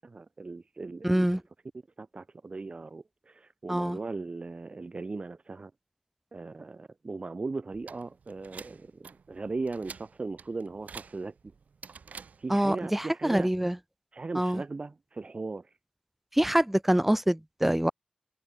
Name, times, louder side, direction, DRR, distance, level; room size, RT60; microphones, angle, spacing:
voice 1, 0.0-1.3 2.0-5.7 6.3-11.3 12.4-13.5 14.1-15.7, right 3 dB, 45° right, 4.3 m, -38 dB
voice 2, 1.0-1.4 3.7-4.0 12.5-13.8 14.3-14.6 16.3-17.9, right 1 dB, 5° right, 0.6 m, -25 dB
sound 1, 7.7-12.7, right 5 dB, 90° right, 3.7 m, -49 dB
wide cardioid pair, 85°, 3 cm